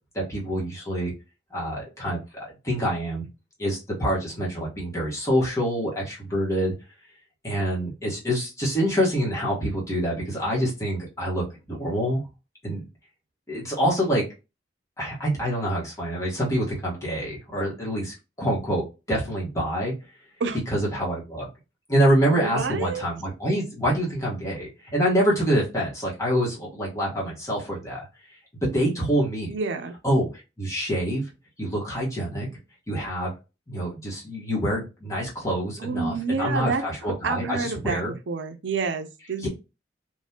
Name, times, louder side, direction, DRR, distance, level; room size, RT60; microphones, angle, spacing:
voice 1, 0.1-1.1 1.5-3.3 3.6-6.7 7.4-12.2 12.6-12.9 13.5-14.3 15.0-19.9 20.7-21.5 21.9-28.1 28.6-29.5 30.0-31.2 31.6-32.5 32.9-33.3 33.7-38.1 39.4-39.5, equal, 15° left, 1.3 m, -26 dB
voice 2, 22.3-23.0 29.5-30.0 35.8-36.8 37.2-39.5, right 4 dB, 75° right, 0.5 m, -28 dB
3.6 x 2.5 x 2.8 m
head